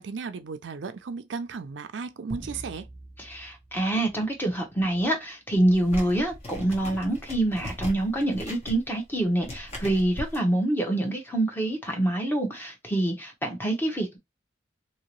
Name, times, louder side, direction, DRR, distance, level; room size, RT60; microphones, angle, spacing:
voice 1, 0.0-2.9, right 5 dB, 85° right, 0.4 m, -35 dB
sound 1, 2.3-4.9, right 1 dB, 5° right, 0.6 m, -44 dB
voice 2, 3.2-14.2, right 1 dB, 10° left, 0.9 m, -26 dB
sound 2, 5.7-10.4, left 1 dB, 40° left, 1.3 m, -38 dB
2.9 x 2.8 x 3.0 m
head